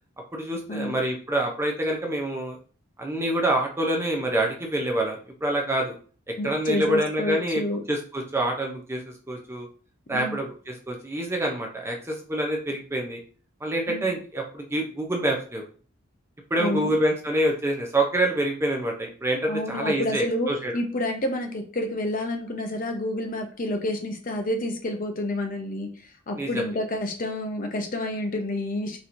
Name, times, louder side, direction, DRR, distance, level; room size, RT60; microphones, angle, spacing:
voice 1, 0.3-2.6 3.0-6.0 6.3-7.6 7.9-9.7 10.1-13.2 13.6-15.6 16.5-20.7 26.4-26.6, right 1 dB, 15° right, 1 dB, 0.5 m, -26 dB
voice 2, 6.4-7.8 10.1-10.4 13.9-14.0 16.6-16.9 19.5-25.9 26.3-29.0, left 1 dB, 45° left, 4 dB, 0.6 m, -29 dB
4.1 x 2.9 x 2.5 m, 0.40 s
head